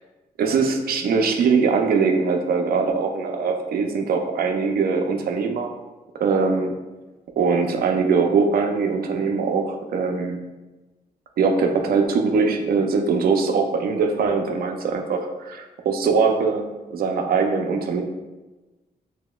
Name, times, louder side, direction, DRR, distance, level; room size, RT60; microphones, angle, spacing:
voice 1, 0.4-5.7 6.2-6.7 7.4-10.4 11.4-18.0, right 5 dB, 75° right, 4 dB, 0.5 m, -22 dB
6.2 x 2.8 x 2.3 m, 1.2 s
cardioid pair, 100°, 16 cm